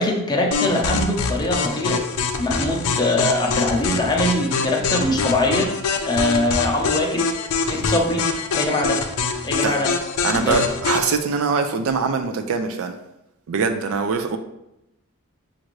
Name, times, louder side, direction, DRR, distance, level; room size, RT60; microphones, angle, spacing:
voice 1, 0.0-2.0 2.4-5.7 6.1-7.3 7.7-8.3 8.5-9.0 9.4-10.0 10.3-10.6, left 1 dB, 20° left, 0 dB, 0.6 m, -22 dB
sound 1, 0.5-11.1, left 5 dB, 75° left, 0.5 m, -24 dB
voice 2, 10.2-13.0 13.5-14.4, right 5 dB, 65° right, 7 dB, 0.4 m, -23 dB
6.2 x 2.5 x 3.1 m, 0.88 s
head